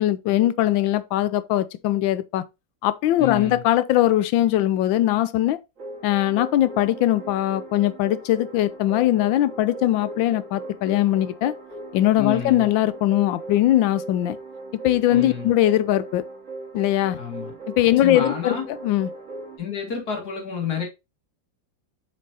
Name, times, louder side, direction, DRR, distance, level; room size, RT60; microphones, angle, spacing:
voice 1, 0.0-2.4 2.8-5.6 6.0-11.5 11.9-14.4 14.8-16.2 16.7-17.2 17.8-19.1, left 13 dB, 80° left, 1.3 m, -21 dB
voice 2, 3.2-3.6 12.2-12.7 15.1-15.5 17.2-17.5 18.0-18.6 19.6-20.9, left 6 dB, 55° left, 2.5 m, -29 dB
sound 1, 5.8-19.6, right 2 dB, 40° right, 2.0 m, -39 dB
7.4 x 5.2 x 2.8 m
omnidirectional pair, 2.1 m